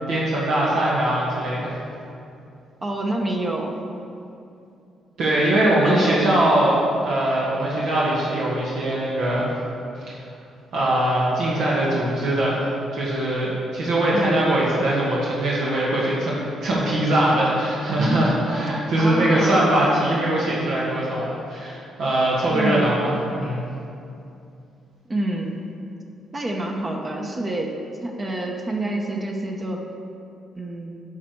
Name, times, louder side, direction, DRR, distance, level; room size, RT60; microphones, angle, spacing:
voice 1, 0.1-1.7 5.2-9.5 10.0-10.1 10.7-23.6, right 1 dB, 75° right, -6 dB, 1.7 m, -21 dB
voice 2, 2.8-3.8 5.8-6.3 14.1-14.4 19.0-19.7 22.5-22.9 25.1-25.6 26.3-29.8 30.6-31.0, right 1 dB, 30° right, 1 dB, 1.0 m, -27 dB
9.8 x 6.4 x 4.6 m, 2.6 s
cardioid pair, 90°, 0 cm